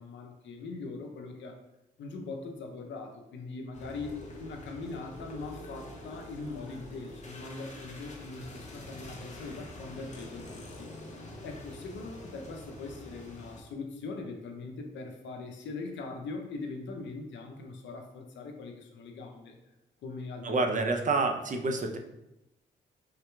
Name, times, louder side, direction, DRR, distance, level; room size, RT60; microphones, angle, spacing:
voice 1, 0.0-1.6 2.0-11.0 11.4-19.6 20.0-20.6, left 3 dB, 65° left, 3 dB, 0.6 m, -41 dB
sound 1, 3.7-13.6, left 1 dB, 35° left, 0.8 m, -46 dB
voice 2, 20.4-22.0, right 3 dB, 40° right, 3 dB, 0.6 m, -28 dB
3.6 x 2.8 x 2.3 m, 0.90 s
supercardioid pair, 50°, 20 cm